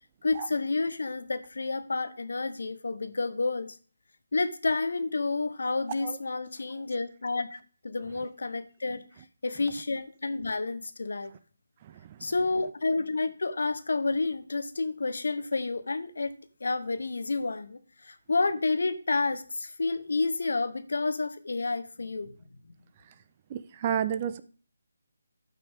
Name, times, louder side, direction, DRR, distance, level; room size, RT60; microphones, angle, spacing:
voice 1, 0.2-3.7 4.3-7.6 7.8-9.0 9.4-11.3 12.2-16.3 16.6-22.3 22.6-22.7, left 3 dB, 75° left, 12 dB, 1.1 m, -30 dB
voice 2, 11.8-12.3 23.5-24.4, right 9 dB, 30° right, 13 dB, 0.6 m, -32 dB
12.5 x 5.8 x 3.7 m, 0.40 s
figure-of-eight pair, 160°, 0 cm